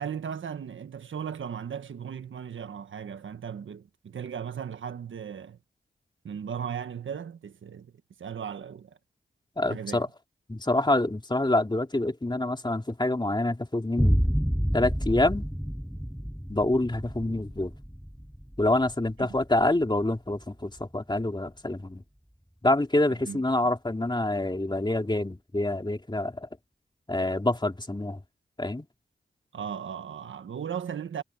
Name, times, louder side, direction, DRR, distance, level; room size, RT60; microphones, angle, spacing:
voice 1, 0.0-5.6 6.2-7.9 8.2-9.0 9.7-10.0 19.2-19.4 23.2-23.4 29.5-31.2, right 8 dB, 85° right, 1.4 m, -36 dB
voice 2, 9.6-10.1 10.5-14.2 14.7-15.5 16.5-17.7 18.6-22.0 22.6-26.5 27.1-28.2 28.6-28.9, left 2 dB, 25° left, 3.1 m, -26 dB
sound 1, 14.0-21.4, equal, ahead, 0.4 m, -30 dB
cardioid pair, 45°, 20 cm